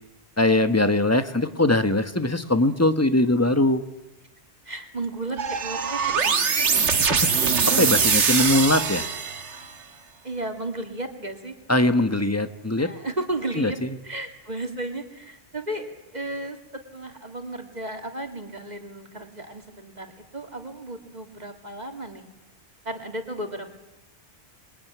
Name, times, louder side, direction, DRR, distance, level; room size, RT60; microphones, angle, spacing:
voice 1, 0.4-3.8 7.2-9.0 11.7-12.9 13.6-13.7, left 2 dB, 15° left, 9 dB, 1.3 m, -21 dB
voice 2, 4.6-6.5 10.2-11.6 12.8-13.8 14.0-22.3 22.8-23.7, right 2 dB, 35° right, 4 dB, 2.6 m, -34 dB
sound 1, 5.4-9.7, right 5 dB, 85° right, 1.6 m, -22 dB
27.0 x 22.5 x 9.4 m, 1.0 s
omnidirectional pair, 1.2 m